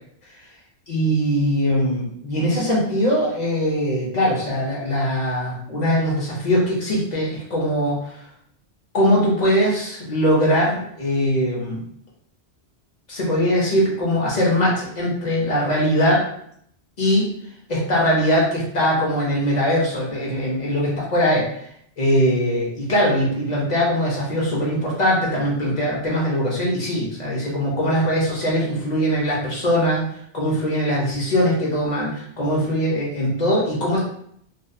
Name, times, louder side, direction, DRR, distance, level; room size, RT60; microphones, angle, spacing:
voice 1, 0.9-8.2 8.9-11.8 13.1-16.3 17.0-17.3 17.7-21.7 22.0-30.0 30.3-34.0, equal, 45° left, -4 dB, 0.8 m, -21 dB
2.6 x 2.3 x 2.3 m, 0.68 s
omnidirectional pair, 1.1 m